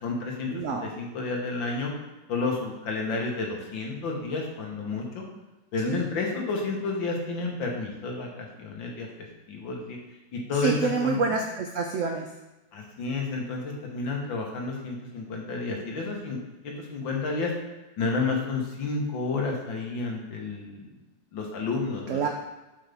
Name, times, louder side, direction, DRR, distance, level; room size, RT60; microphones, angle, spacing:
voice 1, 0.0-1.9 2.3-5.2 5.7-9.1 9.5-10.0 10.3-11.2 12.7-16.4 16.6-17.5 18.0-20.9 21.3-22.3, left 3 dB, 90° left, 0 dB, 2.0 m, -30 dB
voice 2, 0.5-0.9 5.8-6.0 10.6-12.3 22.1-22.3, right 4 dB, 80° right, 3 dB, 0.6 m, -27 dB
7.7 x 5.2 x 3.5 m, 1.1 s
omnidirectional pair, 2.0 m